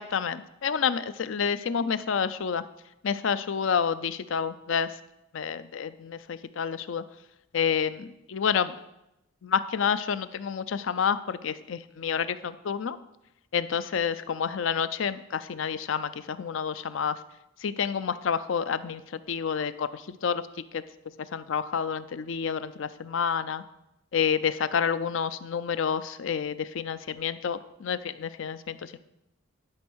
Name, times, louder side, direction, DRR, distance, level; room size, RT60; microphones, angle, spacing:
voice 1, 0.0-2.6 3.0-5.0 5.3-7.0 7.5-8.7 9.4-13.0 13.5-17.2 17.6-20.4 20.7-20.8 21.3-23.6 24.1-29.0, left 7 dB, 65° left, 14 dB, 0.5 m, -29 dB
11.5 x 4.5 x 6.2 m, 0.88 s
head